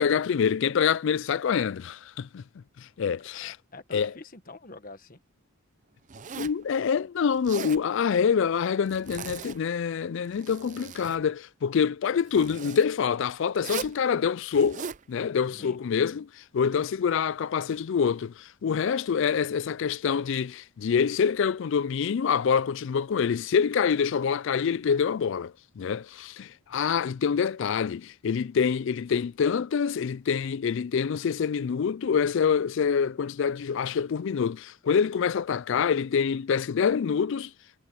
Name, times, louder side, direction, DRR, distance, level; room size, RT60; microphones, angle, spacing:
voice 1, 0.0-2.4 2.8-3.6 3.9-4.1 6.3-37.5, left 6 dB, 55° left, 0.3 m, -26 dB
voice 2, 3.4-5.2 15.5-15.8 26.7-26.9, left 2 dB, 40° left, 1.4 m, -46 dB
Zipper (clothing), 6.1-6.6 7.3-7.8 8.9-9.6 10.2-11.2 12.3-12.9 13.6-14.0 14.5-15.0, right 6 dB, 35° right, 0.5 m, -39 dB
head